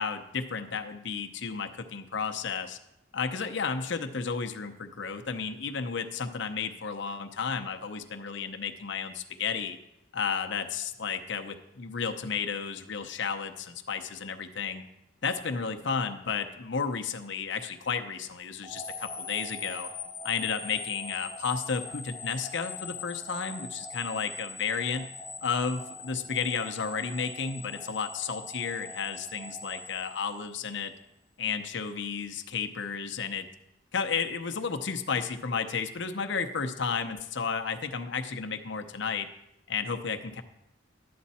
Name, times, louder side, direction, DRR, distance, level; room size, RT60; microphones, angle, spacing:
voice 1, 0.0-2.8 3.1-9.8 10.1-14.8 15.2-19.9 20.2-25.1 25.4-30.9 31.4-33.5 33.9-39.3 39.7-40.4, left 5 dB, 65° left, 6 dB, 0.7 m, -32 dB
sound 1, 18.6-30.8, left 3 dB, 15° left, 0.8 m, -42 dB
11.0 x 8.5 x 4.2 m, 0.87 s
head